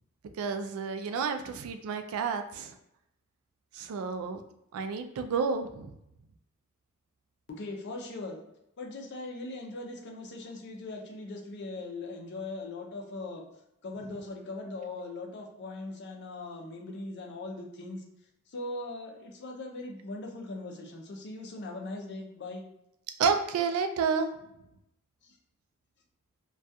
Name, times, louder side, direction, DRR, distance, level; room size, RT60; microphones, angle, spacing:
voice 1, 0.4-2.8 3.7-4.4 4.7-5.9 23.2-24.3, right 5 dB, 80° right, 9 dB, 0.3 m, -30 dB
voice 2, 7.5-8.4 8.8-13.4 13.8-18.0 18.5-22.7 25.2-25.4, left 2 dB, 55° left, 2 dB, 0.5 m, -40 dB
2.3 x 2.3 x 2.6 m, 0.82 s
head